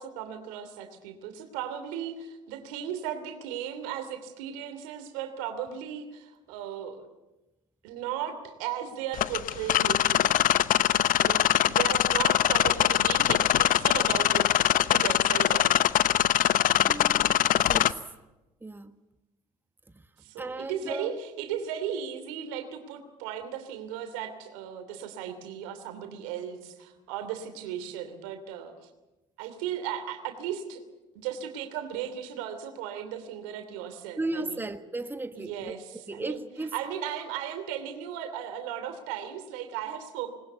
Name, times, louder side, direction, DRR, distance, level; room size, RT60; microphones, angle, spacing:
voice 1, 0.0-7.1 7.8-10.4 11.2-14.4 14.9-15.9 20.2-28.7 29.4-30.8 31.1-34.6 35.3-36.4 36.7-40.3, right 9 dB, 80° right, 2.9 m, -36 dB
sound 1, 9.1-17.9, left 12 dB, 55° left, 0.8 m, -23 dB
voice 2, 16.8-17.9 18.6-18.9 20.4-21.1 34.2-35.8 36.1-36.7, right 2 dB, 10° right, 1.4 m, -35 dB
20.5 x 20.0 x 8.3 m
hypercardioid pair, 70°, 16 cm